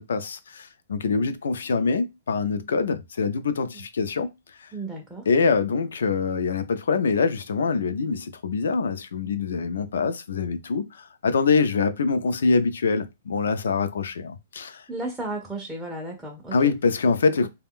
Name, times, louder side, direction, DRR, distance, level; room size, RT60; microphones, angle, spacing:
voice 1, 0.0-4.3 4.6-4.7 5.3-14.8 16.5-17.5, left 4 dB, 85° left, 0.4 m, -24 dB
voice 2, 4.7-5.3 14.9-16.8 17.4-17.5, right 2 dB, 5° right, 0.4 m, -34 dB
2.5 x 2.2 x 3.5 m
hypercardioid pair, 165°, 0 cm